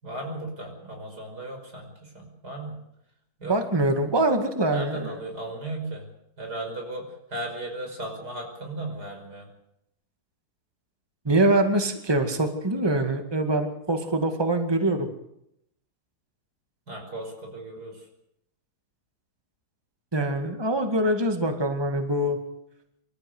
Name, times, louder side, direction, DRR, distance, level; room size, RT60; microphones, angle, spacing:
voice 1, 0.0-2.8 3.4-3.5 4.7-6.1 6.4-7.0 7.3-9.5 16.9-18.0, right 2 dB, 90° right, 3 dB, 6.1 m, -36 dB
voice 2, 3.4-5.2 11.3-15.1 20.1-22.4, right 1 dB, 15° right, 6 dB, 2.1 m, -24 dB
26.0 x 13.5 x 7.9 m, 0.79 s
omnidirectional pair, 1.7 m